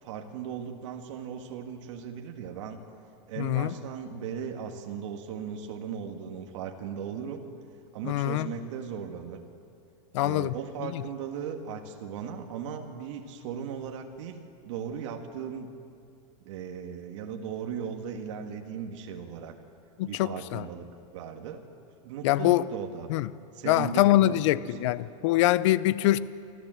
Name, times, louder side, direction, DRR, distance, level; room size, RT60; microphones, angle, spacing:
voice 1, 0.0-2.8 3.3-7.4 7.9-9.4 10.2-15.7 16.5-19.6 20.0-21.6 22.0-23.1 23.5-24.9, right 7 dB, 65° right, 1.8 m, -37 dB
voice 2, 3.4-3.7 8.0-8.5 10.1-10.5 10.9-11.0 20.0-20.7 22.2-22.6 23.1-23.3 23.7-26.2, left 16 dB, 65° left, 0.7 m, -24 dB
26.0 x 14.0 x 7.7 m
supercardioid pair, 145°, 17 cm